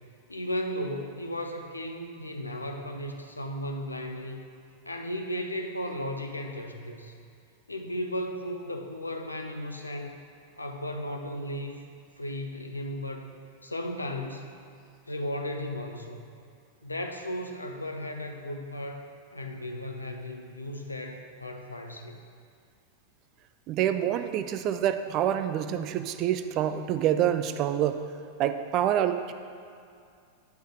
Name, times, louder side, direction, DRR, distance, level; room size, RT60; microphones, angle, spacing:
voice 1, 0.3-4.4 4.9-7.1 7.7-10.2 10.6-11.8 12.2-13.3 13.6-14.5 15.1-16.3 16.8-19.1 19.3-22.2, left 1 dB, 85° left, 3 dB, 0.6 m, -35 dB
voice 2, 23.7-28.0 28.4-29.3, right 10 dB, 40° right, 9 dB, 0.4 m, -27 dB
9.4 x 3.9 x 4.9 m, 2.4 s
figure-of-eight pair, 90°, 0 cm